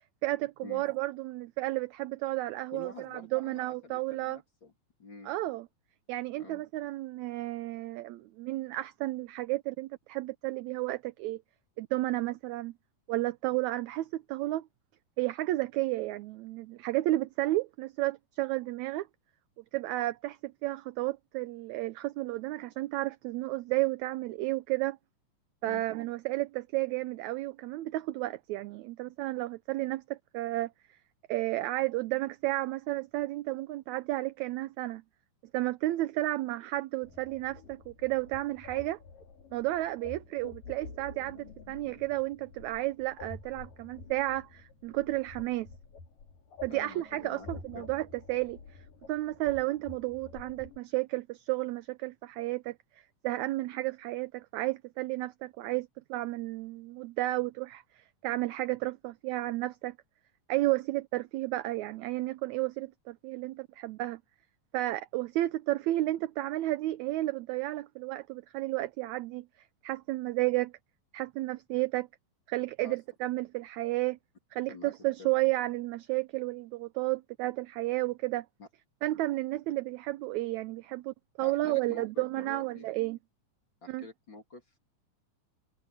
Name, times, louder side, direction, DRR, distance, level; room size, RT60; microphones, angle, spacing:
voice 1, 0.2-4.4 5.3-5.7 6.1-11.4 11.8-12.7 13.1-14.7 15.2-19.1 19.7-25.0 25.6-30.7 31.3-35.0 35.5-39.0 39.5-45.7 46.6-48.6 49.1-52.8 53.2-60.0 60.5-64.2 64.7-69.5 69.8-70.7 71.1-72.1 72.5-74.2 74.5-78.5 79.0-83.2 83.9-84.0, right 18 dB, 80° right, 1.7 m, -32 dB
voice 2, 2.7-4.7 5.0-5.3 6.4-6.6 25.6-25.8 46.7-47.5 47.7-47.9 72.8-73.0 74.7-74.9 75.2-75.3 78.6-78.7 81.4-82.9 83.8-84.8, left 3 dB, 35° left, 3.6 m, -47 dB
sound 1, 37.0-50.8, left 4 dB, 85° left, 5.0 m, -49 dB
omnidirectional pair, 3.7 m